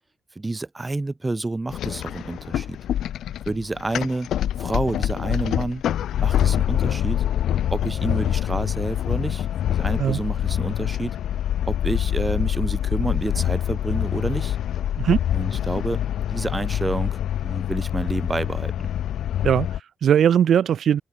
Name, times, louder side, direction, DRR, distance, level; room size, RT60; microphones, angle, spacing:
voice 1, 0.3-2.8 3.5-4.3 4.6-5.8 6.2-7.2 7.7-11.2 11.7-14.6 15.3-16.0 16.3-18.9, right 2 dB, 20° right, 1.2 m, -29 dB
sound 1, 1.7-19.8, left 11 dB, 70° left, 1.2 m, -25 dB
voice 2, 19.4-21.0, right 9 dB, 60° right, 0.4 m, -19 dB
open air
cardioid pair, 90°, 0 cm